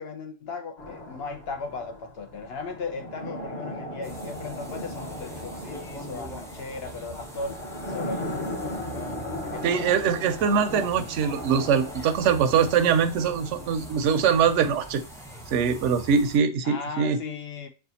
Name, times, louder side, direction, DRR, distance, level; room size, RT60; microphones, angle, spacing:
voice 1, 0.0-7.6 7.9-8.7 9.4-9.9 16.6-17.7, left 4 dB, 60° left, 0.7 m, -37 dB
sound 1, 0.8-14.6, left 1 dB, 35° left, 1.0 m, -38 dB
sound 2, 4.0-16.4, right 1 dB, 5° left, 0.4 m, -42 dB
voice 2, 9.6-15.0 15.5-17.2, right 7 dB, 75° right, 0.9 m, -23 dB
6.2 x 2.3 x 2.7 m
omnidirectional pair, 1.3 m